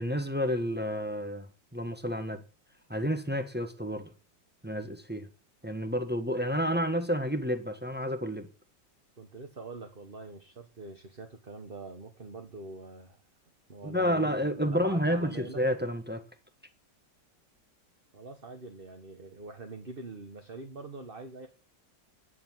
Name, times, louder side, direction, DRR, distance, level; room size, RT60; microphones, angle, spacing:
voice 1, 0.0-2.4 2.9-4.1 4.6-5.3 5.6-8.5 13.8-16.2, equal, 5° right, 1.1 m, -30 dB
voice 2, 9.2-13.2 13.7-15.6 18.1-21.5, right 3 dB, 30° right, 1.6 m, -44 dB
10.0 x 8.0 x 9.6 m
omnidirectional pair, 2.1 m